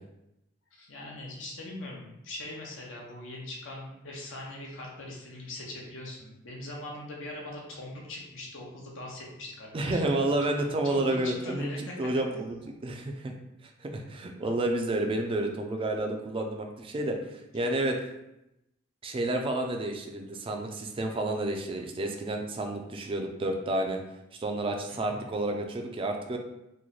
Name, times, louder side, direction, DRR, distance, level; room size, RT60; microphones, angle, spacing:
voice 1, 0.7-10.3 10.8-12.0 17.1-17.3 24.9-25.2, left 2 dB, 70° left, -2 dB, 0.8 m, -41 dB
voice 2, 9.7-11.7 12.0-13.3 13.8-17.2 17.5-18.0 19.0-24.0 24.4-26.4, right 1 dB, 30° right, 3 dB, 0.4 m, -30 dB
3.0 x 2.1 x 3.8 m, 0.87 s
head